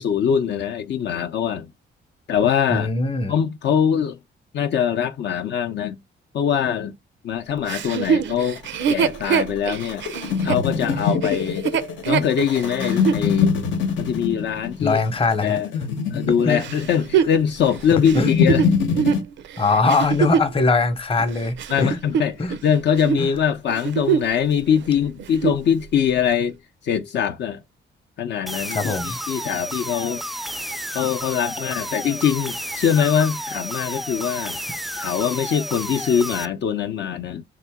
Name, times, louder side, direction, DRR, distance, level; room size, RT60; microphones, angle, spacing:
voice 1, 0.0-1.7 2.3-2.9 3.3-4.2 4.5-6.0 6.3-6.9 7.2-8.6 8.9-10.0 10.4-11.7 12.1-13.6 14.0-15.0 15.4-15.7 16.1-18.6 21.7-26.6 26.8-27.6 28.2-30.2 30.9-34.6 35.0-37.4, left 8 dB, 70° left, 0.6 m, -22 dB
voice 2, 2.7-3.3 14.8-15.6 16.4-16.6 18.1-18.3 19.6-22.0 22.4-22.5 23.2-23.3 28.7-29.2, left 3 dB, 30° left, 0.8 m, -21 dB
Chuckle chortle, 7.7-13.3 13.8-13.9 16.6-20.6 21.2-22.7 22.9-23.3 23.7-24.4 24.7-24.8 25.2-25.7 26.3-26.4, right 7 dB, 75° right, 0.5 m, -24 dB
sound 1, 8.6-19.2, left 6 dB, 90° left, 0.9 m, -24 dB
sound 2, 28.5-36.5, equal, ahead, 0.3 m, -31 dB
3.6 x 2.9 x 3.5 m
cardioid pair, 110°, 19 cm